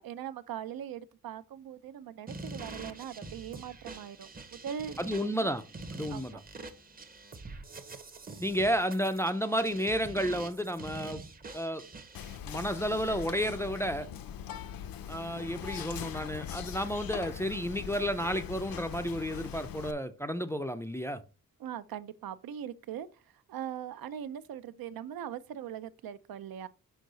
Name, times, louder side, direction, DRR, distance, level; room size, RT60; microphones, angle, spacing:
voice 1, 0.0-5.5 6.1-6.4 21.6-26.7, right 9 dB, 80° right, 0.5 m, -41 dB
sound 1, 2.3-12.4, right 3 dB, 25° right, 0.7 m, -45 dB
voice 2, 5.0-5.6 5.9-6.4 8.4-11.2 11.5-11.8 12.5-14.1 15.1-21.2, equal, 10° left, 0.3 m, -31 dB
Whispering, 12.2-19.9, left 9 dB, 75° left, 0.6 m, -41 dB
6.4 x 4.6 x 3.9 m
wide cardioid pair, 170°, 35 cm